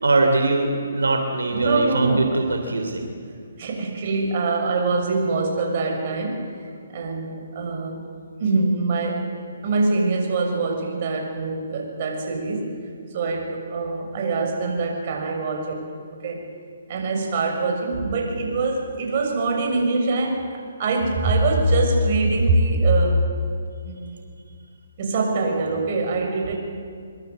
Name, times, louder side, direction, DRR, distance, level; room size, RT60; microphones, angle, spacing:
voice 1, 0.0-3.1, right 2 dB, 90° right, 4 dB, 3.1 m, -22 dB
voice 2, 1.5-2.4 3.5-6.5 6.9-8.1 8.4-9.3 9.6-12.8 13.1-15.9 16.2-16.4 16.9-23.3 23.8-24.2 25.0-26.5, right 2 dB, 45° right, 1 dB, 6.7 m, -23 dB
24.5 x 23.5 x 8.0 m, 2.2 s
hypercardioid pair, 150°, 0 cm